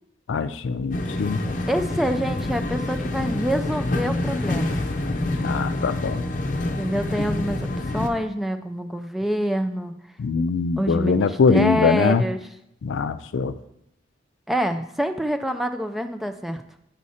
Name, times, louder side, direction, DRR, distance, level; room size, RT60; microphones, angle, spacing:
voice 1, 0.3-1.4 5.4-6.2 10.2-12.2 12.8-13.5, left 5 dB, 90° left, 13 dB, 0.4 m, -22 dB
sound 1, 0.9-8.1, left 1 dB, 45° left, 0.7 m, -27 dB
voice 2, 1.7-4.9 6.8-9.9 10.8-12.4 14.5-16.6, equal, ahead, 7 dB, 0.3 m, -26 dB
8.3 x 4.9 x 4.2 m, 0.79 s
head